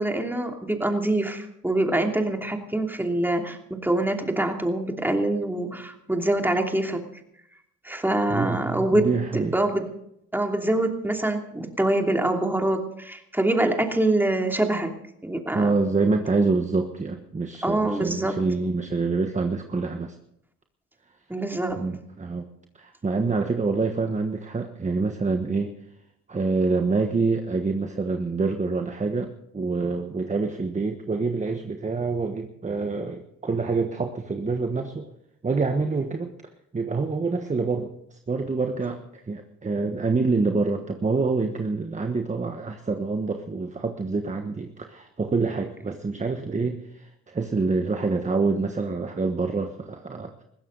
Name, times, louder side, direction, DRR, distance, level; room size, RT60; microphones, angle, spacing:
voice 1, 0.0-7.0 7.8-9.1 9.3-9.9 10.3-14.9 15.2-15.7 17.6-18.4 21.3-21.8, right 1 dB, 5° right, 3 dB, 2.8 m, -25 dB
voice 2, 8.3-9.6 15.5-20.1 21.8-22.5 22.8-25.7 26.3-35.1 35.4-36.3 36.7-50.4, right 4 dB, 25° right, 5 dB, 1.3 m, -26 dB
20.5 x 15.5 x 4.0 m, 0.76 s
cardioid pair, 90°, 30 cm